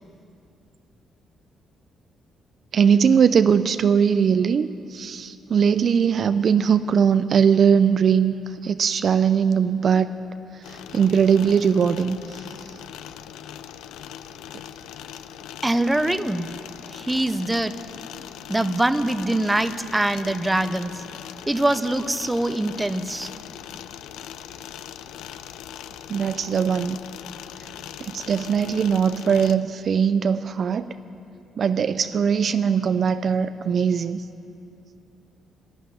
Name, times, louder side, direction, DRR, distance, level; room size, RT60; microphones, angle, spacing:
voice 1, 2.7-8.3 8.6-10.1 10.7-12.4 26.1-27.0 28.0-30.9 31.6-34.2, right 7 dB, 55° right, 12 dB, 0.4 m, -20 dB
sound 1, 10.6-29.6, left 10 dB, 90° left, 0.5 m, -40 dB
voice 2, 15.6-16.5 16.9-17.8 18.5-21.0 21.5-23.3, right 1 dB, 10° right, 12 dB, 0.6 m, -23 dB
11.5 x 11.0 x 9.9 m, 2.6 s
cardioid pair, 90°, 0 cm